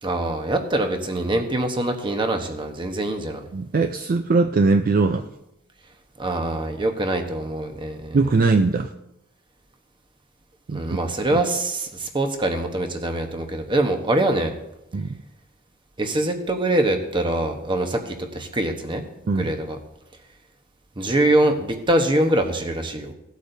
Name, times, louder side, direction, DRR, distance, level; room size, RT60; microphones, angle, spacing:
voice 1, 0.0-3.4 6.2-8.2 10.7-14.5 16.0-19.0 19.3-19.8 21.0-23.1, right 1 dB, 25° right, 4 dB, 1.0 m, -24 dB
voice 2, 3.5-5.3 8.1-8.9 10.7-11.0 11.3-11.4 14.9-15.1 19.3-19.5, right 3 dB, 45° right, 7 dB, 0.4 m, -20 dB
16.0 x 8.3 x 2.7 m, 0.87 s
head